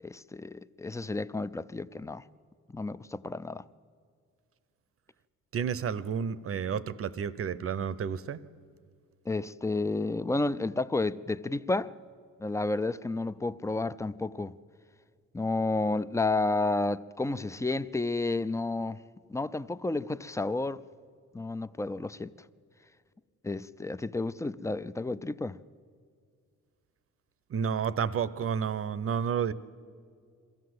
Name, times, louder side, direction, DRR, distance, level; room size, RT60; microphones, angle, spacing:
voice 1, 0.0-2.2 2.7-3.7 9.3-11.9 12.4-14.6 15.3-19.0 19.3-20.8 21.3-22.3 23.4-25.6, left 2 dB, 10° left, 0.4 m, -31 dB
voice 2, 5.5-8.4 27.5-29.5, right 7 dB, 50° right, 0.8 m, -31 dB
22.5 x 15.0 x 7.9 m
cardioid pair, 90°, 30 cm